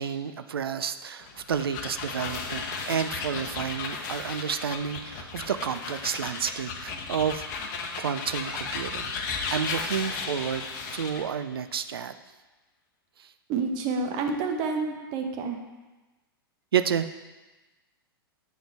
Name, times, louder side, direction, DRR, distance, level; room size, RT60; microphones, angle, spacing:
voice 1, 0.0-7.4 8.0-9.1 9.5-12.1 16.7-17.1, right 8 dB, 75° right, 10 dB, 0.4 m, -30 dB
sound 1, 1.2-11.3, left 4 dB, 50° left, 0.8 m, -35 dB
voice 2, 13.5-15.6, right 4 dB, 40° right, 3 dB, 0.9 m, -29 dB
8.2 x 3.9 x 3.4 m, 1.1 s
figure-of-eight pair, 105°, 13 cm